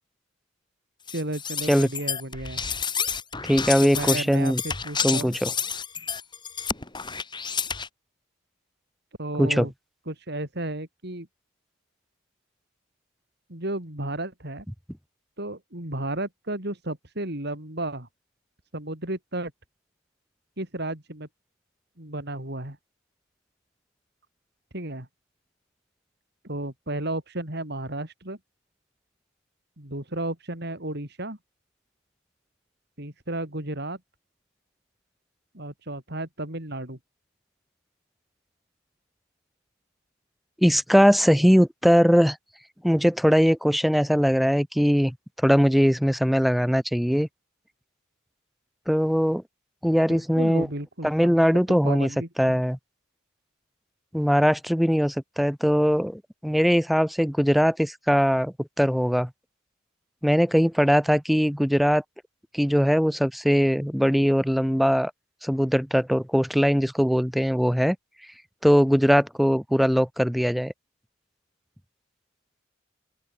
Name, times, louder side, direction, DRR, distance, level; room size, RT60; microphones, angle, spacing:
sound 1, 1.1-7.9, left 6 dB, 20° left, 2.5 m, -30 dB
voice 1, 1.1-2.6 3.8-5.4 9.2-9.7 10.1-11.3 13.5-14.7 15.4-18.1 18.7-19.5 20.6-21.3 22.0-22.8 24.7-25.1 26.4-28.4 29.8-31.4 33.0-34.0 35.5-37.0 50.1-52.6, right 1 dB, 55° right, 4.7 m, -33 dB
voice 2, 3.5-4.6 5.0-5.5 9.4-9.7 40.6-42.4 42.8-47.3 48.9-49.4 49.8-50.7 51.0-52.1 52.4-52.8 54.1-59.3 60.2-62.0 62.5-65.1 65.4-68.0 68.6-70.7, equal, ahead, 0.4 m, -21 dB
open air
head